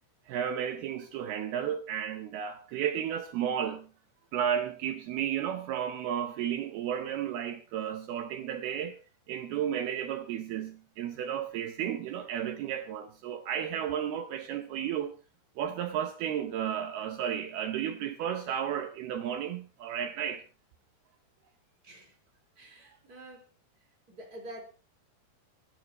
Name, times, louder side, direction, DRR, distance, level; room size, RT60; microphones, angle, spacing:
voice 1, 0.3-3.9 4.3-9.0 9.3-15.1 15.6-20.4, right 9 dB, 75° right, 2.4 m, -33 dB
voice 2, 21.8-22.2 22.6-23.5 24.1-24.6, right 1 dB, 20° right, 4.2 m, -47 dB
27.5 x 11.0 x 3.0 m
omnidirectional pair, 5.4 m